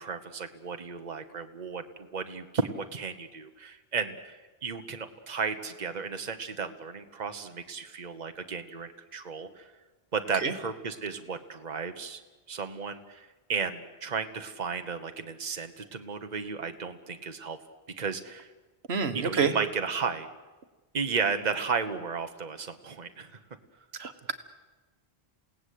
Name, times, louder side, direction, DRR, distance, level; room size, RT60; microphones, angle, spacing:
voice 1, 0.0-9.7 10.1-12.2 12.5-17.6 18.0-18.5 19.1-20.3 20.9-23.4, right 5 dB, 45° right, 7 dB, 1.4 m, -34 dB
voice 2, 18.9-19.5 24.0-24.3, right 5 dB, 80° right, 9 dB, 1.7 m, -28 dB
28.5 x 17.5 x 8.5 m, 1.2 s
omnidirectional pair, 1.0 m